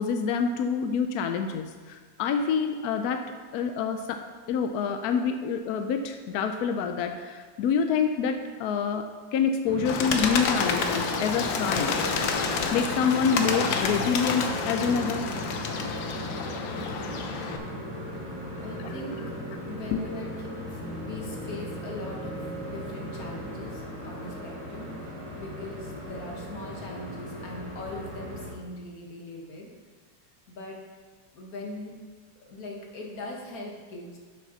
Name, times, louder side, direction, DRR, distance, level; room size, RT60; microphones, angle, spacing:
voice 1, 0.0-4.2 4.5-11.9 12.7-15.3 19.9-20.0, left 6 dB, 75° left, 7 dB, 0.9 m, -27 dB
sound 1, 9.6-28.5, equal, 15° right, 1.5 m, -37 dB
Bird, 9.8-17.6, left 5 dB, 90° left, 1.6 m, -29 dB
voice 2, 18.6-19.2 19.6-22.3 22.6-24.9 25.4-29.7 30.5-30.8 31.3-31.9 32.5-34.2, left 2 dB, 50° left, -1 dB, 1.9 m, -40 dB
11.5 x 6.7 x 4.0 m, 1.5 s
omnidirectional pair, 2.1 m